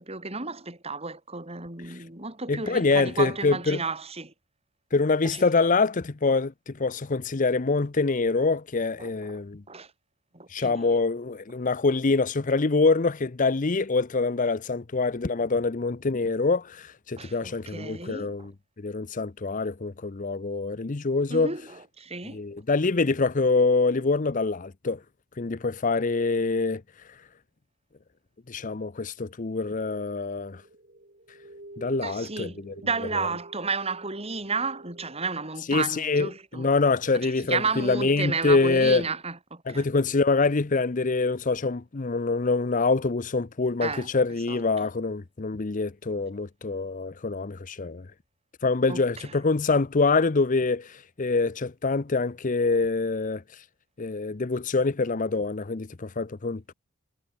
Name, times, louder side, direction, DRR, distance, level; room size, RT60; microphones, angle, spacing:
voice 1, 0.0-4.3 5.2-5.7 9.0-9.4 9.7-9.9 10.3-10.8 17.2-18.5 21.3-22.4 32.0-36.7 37.2-39.8 43.8-44.1 44.5-44.6 48.9-49.0, right 4 dB, 30° right, 5.1 m, -32 dB
voice 2, 2.5-3.8 4.9-9.6 10.5-18.5 18.8-21.5 22.2-25.0 25.4-26.8 28.5-30.6 31.8-32.7 33.1-33.3 35.7-39.1 39.7-48.0 48.6-53.4 54.0-56.7, left 3 dB, 40° left, 0.7 m, -25 dB
sound 1, 29.8-35.3, right 1 dB, 45° right, 4.3 m, -49 dB
head